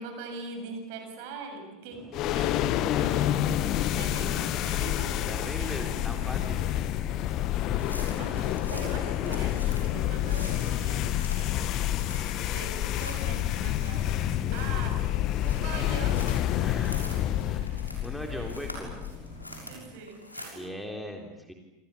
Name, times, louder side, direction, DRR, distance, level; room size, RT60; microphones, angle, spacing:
voice 1, 0.0-3.4 3.7-5.2 5.6-5.7 8.1-11.2 11.8-12.0 12.4-15.0 15.4-16.6 17.0-17.1 18.3-18.5 19.7-20.7, right 3 dB, 50° right, 5 dB, 7.3 m, -42 dB
sound 1, 1.9-20.0, right 3 dB, 15° right, 3.4 m, -47 dB
sound 2, 2.1-19.5, left 13 dB, 40° left, 1.4 m, -28 dB
voice 2, 5.3-6.7 16.6-17.0 17.4-19.0 20.5-21.5, equal, ahead, 3 dB, 3.7 m, -39 dB
sound 3, 7.8-20.5, left 1 dB, 85° left, 6.4 m, -46 dB
28.0 x 27.5 x 7.2 m, 0.99 s
figure-of-eight pair, 80°, 0 cm